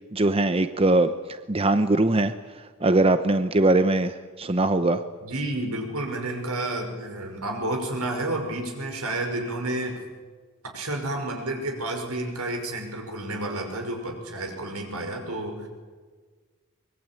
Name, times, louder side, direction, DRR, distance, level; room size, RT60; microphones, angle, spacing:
voice 1, 0.1-2.3 2.8-5.0, right 2 dB, 25° right, 10 dB, 0.8 m, -21 dB
voice 2, 5.2-10.0 10.6-15.7, right 1 dB, 80° right, 3 dB, 5.7 m, -30 dB
24.5 x 22.0 x 8.9 m, 1.5 s
head